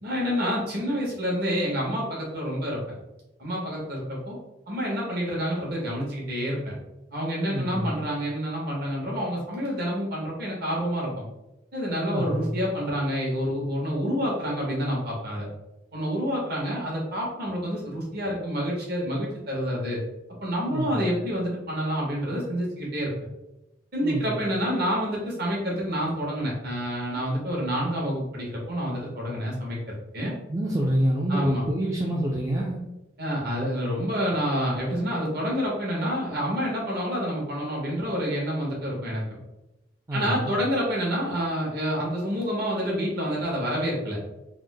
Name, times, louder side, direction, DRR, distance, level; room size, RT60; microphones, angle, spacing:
voice 1, 0.0-2.8 3.4-4.4 4.7-6.7 7.1-11.2 11.7-15.5 15.9-20.0 20.4-23.1 23.9-30.3 31.3-31.6 33.2-39.4 40.1-44.2, equal, 55° right, -3 dB, 1.2 m, -28 dB
voice 2, 7.5-8.0 12.1-12.5 20.7-21.0 24.0-24.4 30.5-32.8 40.1-40.6, right 1 dB, 15° right, -2 dB, 0.3 m, -27 dB
3.5 x 2.1 x 3.3 m, 0.96 s
head